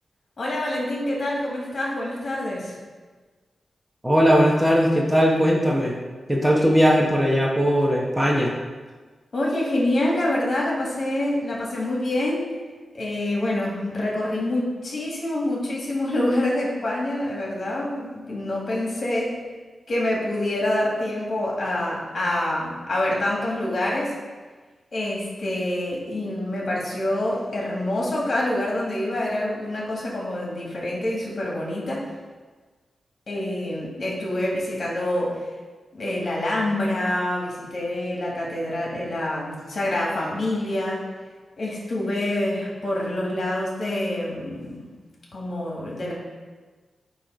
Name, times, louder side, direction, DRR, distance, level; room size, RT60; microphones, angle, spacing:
voice 1, 0.4-2.8 9.3-12.5 12.9-19.4 19.9-24.1 24.9-32.1 33.3-35.5 35.9-41.0 41.6-44.9 45.3-46.1, left 1 dB, 55° left, -4 dB, 2.1 m, -26 dB
voice 2, 4.0-6.0 6.3-8.5, equal, 10° right, -2 dB, 1.1 m, -19 dB
8.8 x 3.1 x 5.2 m, 1.4 s
cardioid pair, 65°, 0 cm